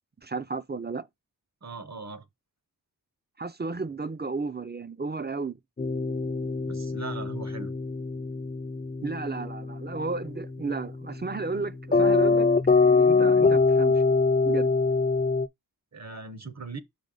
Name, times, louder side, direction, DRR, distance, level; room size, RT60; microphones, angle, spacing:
voice 1, 0.2-1.1 3.4-5.5 9.0-12.5 12.8-14.0 14.4-14.7, right 4 dB, 25° right, 0.5 m, -33 dB
voice 2, 1.6-2.3 6.7-7.7 15.9-16.8, right 3 dB, 45° right, 0.9 m, -39 dB
sound 1, 5.8-15.5, left 4 dB, 25° left, 0.5 m, -24 dB
5.3 x 5.2 x 3.8 m
wide cardioid pair, 60°, 38 cm